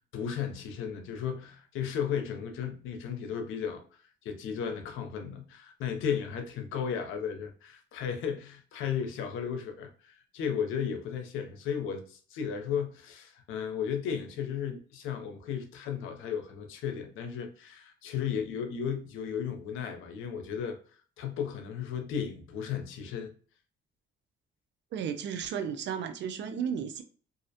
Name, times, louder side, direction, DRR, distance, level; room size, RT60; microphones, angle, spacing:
voice 1, 0.1-3.8 4.2-20.8 21.2-23.3, left 7 dB, 85° left, 0.6 m, -34 dB
voice 2, 24.9-27.0, right 7 dB, 65° right, 0.4 m, -34 dB
2.4 x 2.0 x 2.7 m
cardioid pair, 90°, 20 cm